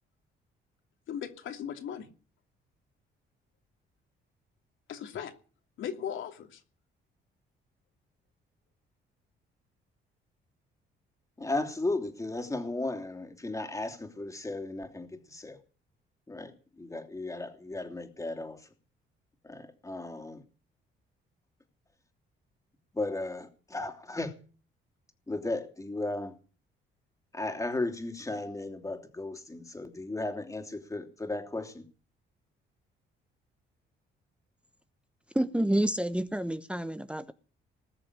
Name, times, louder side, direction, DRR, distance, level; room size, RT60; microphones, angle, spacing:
voice 1, 1.1-2.1 4.9-5.3 5.8-6.6, left 8 dB, 75° left, 2.9 m, -37 dB
voice 2, 11.4-15.6 16.3-18.7 19.4-20.4 22.9-24.3 25.3-26.4 27.3-31.8, left 2 dB, 15° left, 3.1 m, -35 dB
voice 3, 35.3-37.3, right 1 dB, 5° right, 1.1 m, -29 dB
20.0 x 7.0 x 9.8 m
cardioid pair, 90°, 20 cm